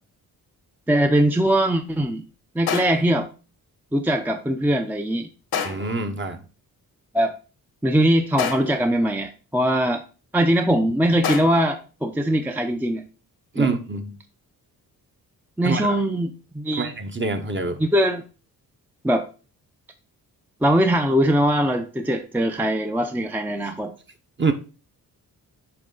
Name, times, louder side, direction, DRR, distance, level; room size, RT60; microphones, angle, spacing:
voice 1, 0.9-2.2 2.5-3.3 3.9-5.3 7.1-7.4 7.8-10.0 10.3-13.0 13.6-13.7 15.6-16.9 17.8-18.2 19.0-19.3 20.6-23.9, right 1 dB, 5° right, 0.6 m, -21 dB
sound 1, 2.7-3.2 5.5-6.0 8.4-8.9 11.2-11.7, left 7 dB, 85° left, 1.3 m, -28 dB
voice 2, 5.6-6.4 13.5-14.1 15.6-15.9 16.8-17.8 24.4-24.5, right 4 dB, 30° right, 1.0 m, -25 dB
8.8 x 3.2 x 3.9 m
cardioid pair, 80°, 37 cm